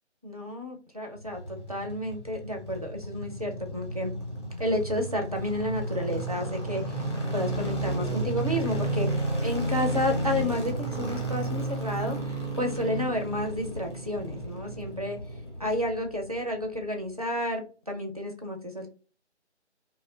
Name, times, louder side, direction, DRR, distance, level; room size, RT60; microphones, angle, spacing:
voice 1, 0.2-4.1 4.6-9.1 9.4-15.2 15.6-18.9, left 1 dB, 35° right, 2 dB, 0.4 m, -31 dB
sound 1, 1.2-16.4 16.6-16.7, right 1 dB, 25° left, 0.6 m, -32 dB
2.4 x 2.1 x 2.6 m, 0.37 s
figure-of-eight pair, 155°, 35 cm